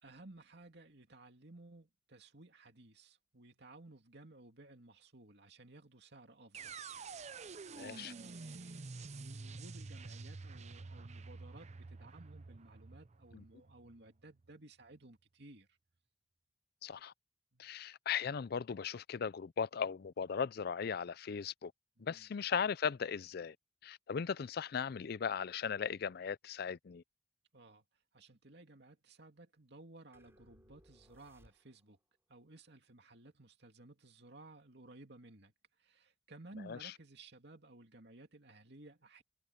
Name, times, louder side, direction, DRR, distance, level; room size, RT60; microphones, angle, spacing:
voice 1, 0.0-15.8 17.5-17.7 22.0-22.3 27.5-27.8 28.1-32.0 32.3-39.2, right 2 dB, 60° right, 2.6 m, -57 dB
sound 1, 6.5-14.5, right 4 dB, 35° right, 0.6 m, -49 dB
voice 2, 7.8-8.1 13.3-13.4 16.8-17.1 17.6-21.7 22.0-23.6 23.8-27.0 36.7-36.9, left 6 dB, 55° left, 0.4 m, -37 dB
sound 2, 30.1-32.0, equal, 15° right, 4.0 m, -66 dB
head